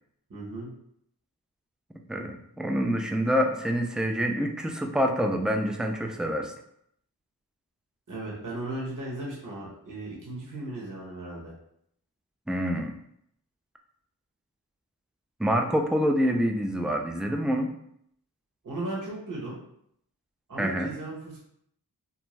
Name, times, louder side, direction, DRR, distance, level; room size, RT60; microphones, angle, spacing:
voice 1, 0.3-0.7 8.1-11.5 18.6-19.6 20.5-21.4, right 2 dB, 55° right, -5 dB, 1.0 m, -36 dB
voice 2, 2.1-6.5 12.5-13.0 15.4-17.7 20.6-20.9, equal, ahead, 3 dB, 0.3 m, -26 dB
2.5 x 2.2 x 3.1 m, 0.72 s
wide cardioid pair, 45°, 39 cm